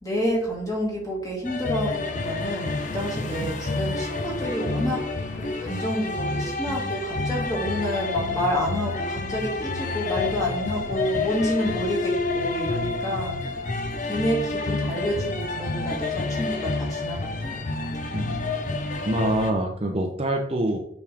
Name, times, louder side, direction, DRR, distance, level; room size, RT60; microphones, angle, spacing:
voice 1, 0.0-5.1 5.3-13.4 14.0-17.6 17.9-18.1, equal, 15° left, -3 dB, 2.1 m, -29 dB
sound 1, 1.4-19.5, left 3 dB, 40° left, 0.7 m, -29 dB
voice 2, 19.0-20.9, right 1 dB, 30° right, 3 dB, 0.7 m, -25 dB
7.4 x 5.3 x 3.5 m, 0.71 s
head